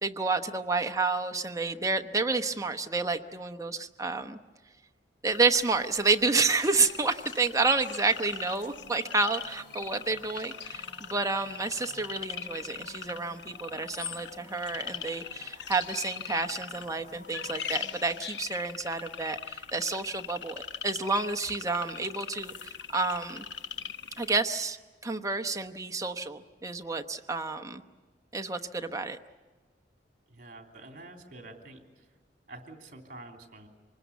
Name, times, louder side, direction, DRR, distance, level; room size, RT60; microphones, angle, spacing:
voice 1, 0.0-4.4 5.2-23.4 24.2-24.8 25.0-27.8 28.3-29.2, right 3 dB, 20° right, 7 dB, 1.0 m, -30 dB
sound 1, 5.3-24.4, left 7 dB, 80° left, 1.0 m, -41 dB
sound 2, 6.7-18.4, equal, 50° left, 7.1 m, -54 dB
voice 2, 30.3-32.1 32.5-33.7, right 2 dB, 50° right, 3 dB, 3.2 m, -48 dB
25.5 x 20.0 x 8.3 m, 1.3 s
head